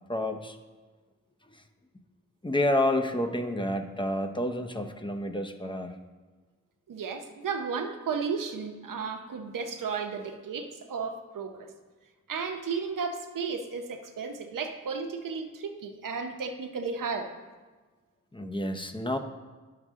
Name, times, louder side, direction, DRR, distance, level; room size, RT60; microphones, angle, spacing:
voice 1, 0.1-0.6 1.5-1.6 2.4-6.0 18.3-19.2, left 1 dB, 15° left, 4 dB, 0.8 m, -29 dB
voice 2, 6.9-11.7 12.3-17.3, right 5 dB, 90° right, 5 dB, 0.8 m, -34 dB
10.0 x 6.7 x 3.7 m, 1.3 s
cardioid pair, 70°, 31 cm